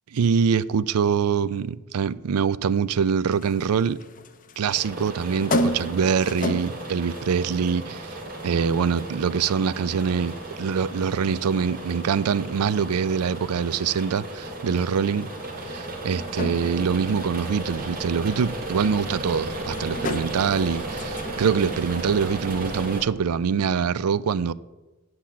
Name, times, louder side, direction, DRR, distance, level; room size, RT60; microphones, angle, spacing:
voice 1, 0.1-4.0 4.6-8.2 8.4-15.3 15.7-24.5, right 6 dB, 80° right, 0.4 m, -24 dB
sound 1, 3.3-23.0, left 1 dB, 40° left, 0.7 m, -36 dB
sound 2, 4.7-23.0, right 2 dB, 40° right, 2.1 m, -35 dB
8.5 x 7.9 x 7.3 m
head